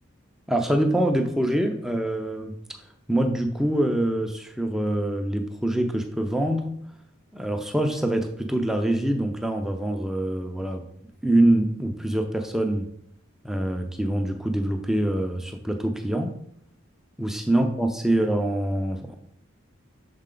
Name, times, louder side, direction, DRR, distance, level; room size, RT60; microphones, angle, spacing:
voice 1, 0.5-2.5 3.1-6.7 7.3-10.9 11.2-12.9 13.4-16.3 17.2-19.1, right 1 dB, ahead, 4 dB, 0.5 m, -24 dB
6.6 x 4.0 x 3.8 m, 0.71 s
head